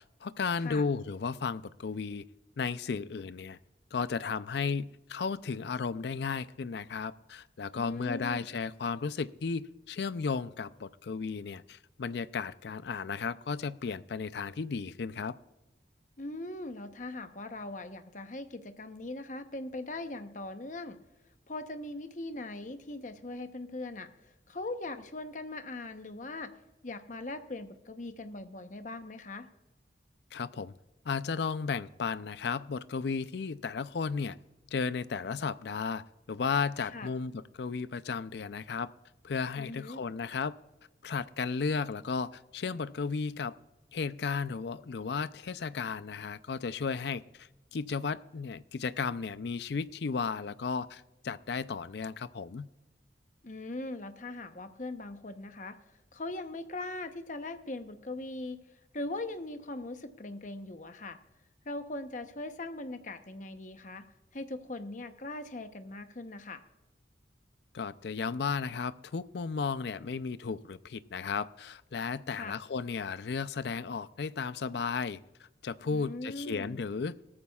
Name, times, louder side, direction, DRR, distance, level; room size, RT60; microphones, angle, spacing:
voice 1, 0.2-2.2 2.6-3.6 3.9-15.3 30.3-30.7 31.1-34.4 34.7-36.0 36.3-38.9 39.2-40.5 41.0-43.5 43.9-52.7 67.7-77.1, left 5 dB, 65° left, 15 dB, 0.4 m, -34 dB
voice 2, 7.7-8.4 16.2-21.0 21.5-26.5 26.8-29.5 36.9-37.1 39.6-40.0 53.4-55.8 56.1-58.6 58.9-61.2 61.6-64.0 64.3-66.6 72.3-72.6 75.9-76.8, left 2 dB, 45° left, 9 dB, 0.8 m, -40 dB
17.5 x 14.0 x 2.4 m, 0.98 s
head